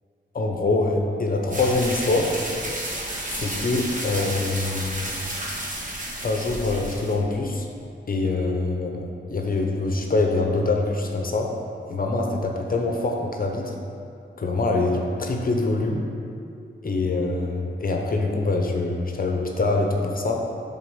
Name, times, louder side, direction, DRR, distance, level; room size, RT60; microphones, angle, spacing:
voice 1, 0.3-2.3 3.3-5.1 6.2-7.7 8.1-11.5 11.9-13.7 14.4-16.0 16.8-20.4, left 2 dB, 45° left, 2 dB, 0.7 m, -24 dB
sound 1, 1.5-7.2, right 1 dB, 40° right, 1.3 m, -32 dB
7.4 x 4.0 x 5.5 m, 2.5 s
wide cardioid pair, 80°, 20 cm